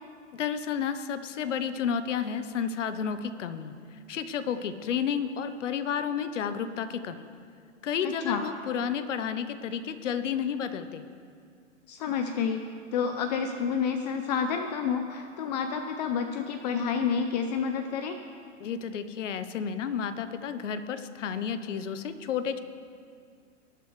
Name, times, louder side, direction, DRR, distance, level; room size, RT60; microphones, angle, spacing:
voice 1, 0.3-3.7 4.1-7.3 7.8-11.0 18.6-22.6, left 7 dB, 75° left, 11 dB, 0.8 m, -31 dB
voice 2, 8.0-8.4 11.9-12.6 12.9-18.2, left 6 dB, 35° left, 7 dB, 0.5 m, -29 dB
19.0 x 8.4 x 3.2 m, 2.2 s
hypercardioid pair, 140°, 37 cm